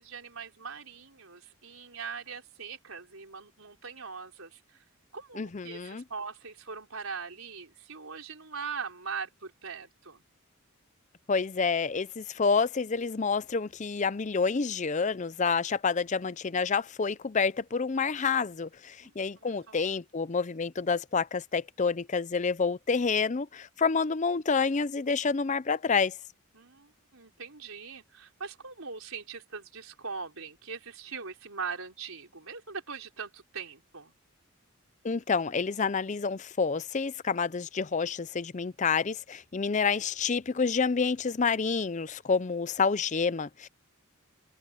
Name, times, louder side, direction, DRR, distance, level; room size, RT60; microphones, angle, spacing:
voice 1, 0.0-4.8 5.1-10.2 19.0-19.8 26.5-34.1, right 5 dB, 75° right, 4.0 m, -41 dB
voice 2, 5.4-6.0 11.3-26.2 35.0-43.7, left 5 dB, 35° left, 0.5 m, -28 dB
head